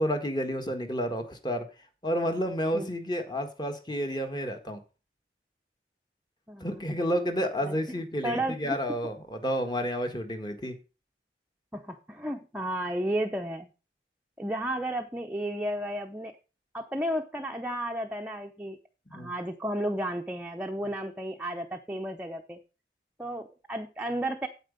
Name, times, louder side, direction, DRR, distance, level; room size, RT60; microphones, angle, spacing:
voice 1, 0.0-1.6 2.0-4.8 6.6-10.8 19.1-19.3, equal, 25° left, 6 dB, 1.6 m, -30 dB
voice 2, 6.5-6.8 7.6-7.8 8.2-8.8 11.7-13.7 14.4-16.4 16.7-18.8 19.1-22.6 23.2-24.5, right 1 dB, 10° right, 2 dB, 0.7 m, -33 dB
9.1 x 8.3 x 5.2 m, 0.33 s
head